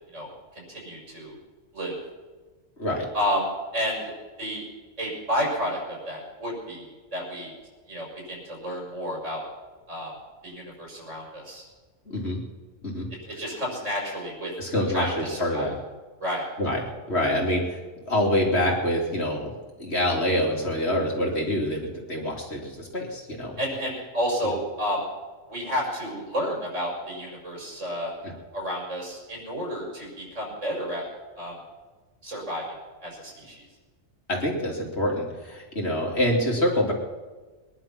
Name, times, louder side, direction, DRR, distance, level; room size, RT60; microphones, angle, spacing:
voice 1, 0.1-1.3 1.7-2.0 3.1-4.6 5.0-7.5 7.9-9.4 9.9-10.1 10.4-11.7 13.2-14.5 14.9-15.7 16.2-16.5 23.6-25.1 25.5-28.1 28.5-31.1 31.4-31.6 32.2-32.6 33.0-33.6, equal, 75° right, -2 dB, 6.0 m, -31 dB
voice 2, 2.8-3.1 12.1-12.4 12.8-13.1 14.6-15.7 16.6-17.8 18.0-23.6 34.3-36.9, left 1 dB, 60° left, -1 dB, 3.3 m, -26 dB
22.0 x 11.0 x 6.0 m, 1.3 s
omnidirectional pair, 1.3 m